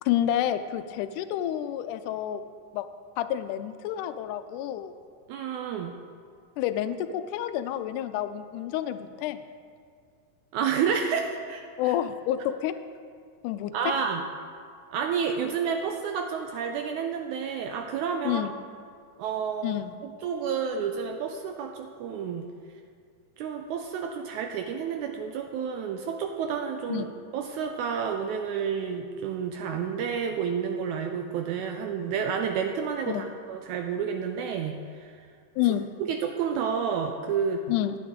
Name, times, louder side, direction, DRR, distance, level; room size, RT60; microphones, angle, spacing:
voice 1, 0.0-2.4 2.7-2.9 3.2-4.9 6.6-9.4 11.8-12.7 13.4-13.7 18.2-18.5 19.6-19.9 26.9-27.1 33.1-33.3 35.6-35.9 37.7-38.0, left 12 dB, 80° left, 11 dB, 2.0 m, -29 dB
voice 2, 5.3-6.0 10.5-11.9 13.7-14.2 14.9-18.4 19.2-22.5 23.4-27.1 27.3-35.3 36.0-37.7, right 6 dB, 80° right, 4 dB, 1.8 m, -30 dB
12.0 x 9.2 x 3.7 m, 2.2 s
omnidirectional pair, 3.8 m